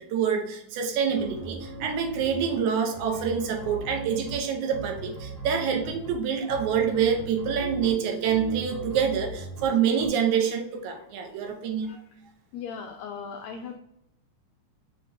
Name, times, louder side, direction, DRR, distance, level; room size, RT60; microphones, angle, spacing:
voice 1, 0.1-11.9, right 7 dB, 75° right, 3 dB, 2.0 m, -26 dB
sound 1, 0.9-10.1, right 2 dB, 40° right, 1.1 m, -39 dB
voice 2, 11.4-12.0 12.5-13.8, left 6 dB, 90° left, 2 dB, 1.5 m, -39 dB
5.7 x 3.3 x 2.6 m, 0.77 s
omnidirectional pair, 3.7 m